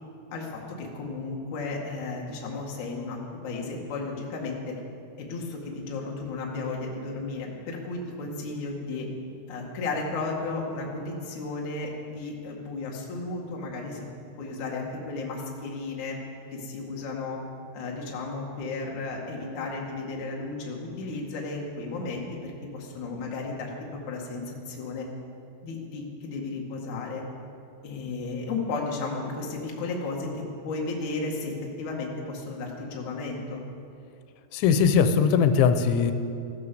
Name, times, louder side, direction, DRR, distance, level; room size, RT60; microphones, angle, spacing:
voice 1, 0.3-4.8 5.2-9.1 9.5-14.1 14.4-16.2 16.5-17.4 17.7-25.1 25.6-27.2 27.8-33.6, left 3 dB, 50° left, -2 dB, 2.9 m, -34 dB
voice 2, 34.5-36.1, left 6 dB, 90° left, 9 dB, 3.2 m, -20 dB
15.0 x 12.0 x 6.9 m, 2.5 s
omnidirectional pair, 5.3 m